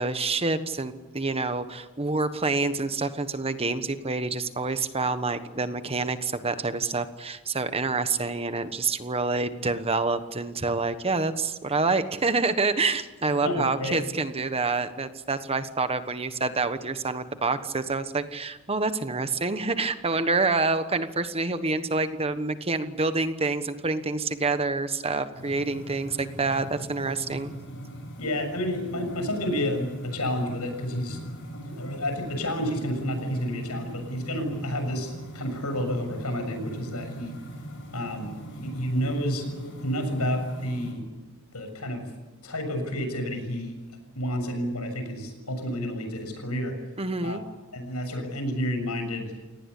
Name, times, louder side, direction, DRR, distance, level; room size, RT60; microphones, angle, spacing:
voice 1, 0.0-27.5 47.0-47.4, right 3 dB, 25° right, 10 dB, 1.3 m, -27 dB
voice 2, 13.4-14.0 28.2-31.2 31.6-37.4 37.9-41.0 41.5-42.1 42.4-43.8 44.2-46.8 47.2-47.4 47.7-49.4, equal, 85° left, 6 dB, 6.9 m, -30 dB
sound 1, 25.3-40.9, equal, 55° left, 7.5 m, -41 dB
28.5 x 19.0 x 8.4 m, 1.1 s
head